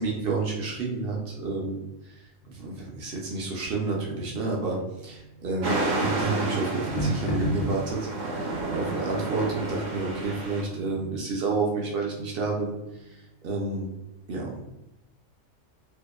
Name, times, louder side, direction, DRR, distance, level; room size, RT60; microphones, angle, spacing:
voice 1, 0.0-13.8 14.3-14.6, right 3 dB, 60° right, -2 dB, 0.6 m, -30 dB
sound 1, 2.4-13.2, right 1 dB, 75° left, 0.9 m, -37 dB
sound 2, 5.6-10.6, right 2 dB, 85° right, 1.0 m, -31 dB
2.7 x 2.0 x 2.2 m, 0.90 s
omnidirectional pair, 1.3 m